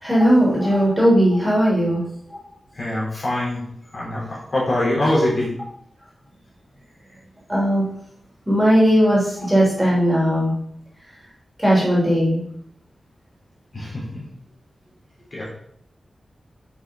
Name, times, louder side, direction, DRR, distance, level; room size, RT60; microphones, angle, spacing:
voice 1, 0.0-2.0 2.3-2.4 7.5-7.9 8.5-10.5 11.6-12.4, equal, 10° right, -6 dB, 3.6 m, -17 dB
voice 2, 2.8-3.6 3.9-5.6 13.7-14.2 15.3-15.5, left 1 dB, 40° left, -5 dB, 3.6 m, -23 dB
11.0 x 6.0 x 3.9 m, 0.72 s
wide cardioid pair, 150°, 0 cm